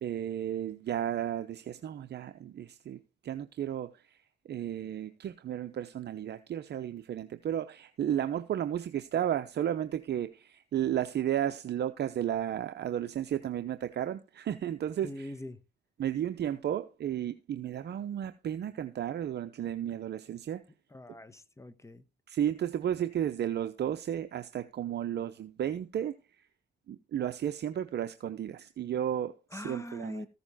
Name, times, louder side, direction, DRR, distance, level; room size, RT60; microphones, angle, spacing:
voice 1, 0.0-15.3 16.0-20.6 22.3-26.5 26.9-30.2, right 10 dB, 55° right, 0.8 m, -33 dB
voice 2, 15.0-15.6 20.9-22.0 29.5-30.3, left 1 dB, 15° left, 1.3 m, -42 dB
14.5 x 6.9 x 4.1 m
cardioid pair, 90°, 20 cm